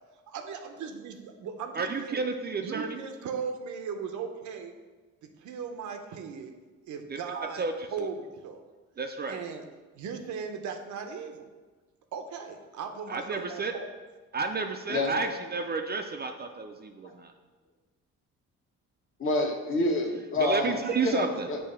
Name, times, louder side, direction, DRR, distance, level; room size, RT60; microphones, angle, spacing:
voice 1, 0.3-2.2 2.6-4.7 5.2-6.5 6.9-7.6 7.9-8.6 9.3-9.6 9.9-11.5 12.1-13.9, right 6 dB, 75° right, 6 dB, 0.7 m, -37 dB
voice 2, 1.7-3.0 7.1-8.1 9.0-9.4 13.1-13.7 14.3-17.3 20.4-21.5, right 4 dB, 35° right, 5 dB, 0.5 m, -31 dB
voice 3, 14.9-15.2 17.0-17.1 19.2-20.8 21.0-21.6, left 2 dB, 45° left, 1 dB, 1.2 m, -28 dB
6.8 x 2.8 x 5.6 m, 1.3 s
cardioid pair, 90°, 30 cm